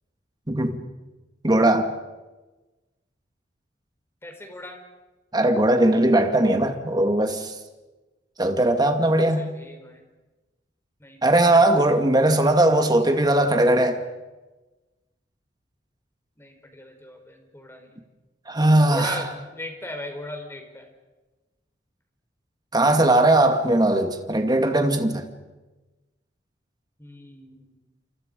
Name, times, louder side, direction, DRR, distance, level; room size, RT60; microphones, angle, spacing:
voice 1, 0.5-0.8 1.4-1.9 5.3-7.5 8.4-9.5 11.2-14.0 18.5-19.2 22.7-25.3, right 1 dB, 25° right, 2.2 m, -19 dB
voice 2, 4.2-4.8 9.1-10.0 11.0-11.3 16.4-18.0 18.8-20.9 27.0-27.8, left 1 dB, 15° left, 4.4 m, -38 dB
29.0 x 27.5 x 5.3 m
head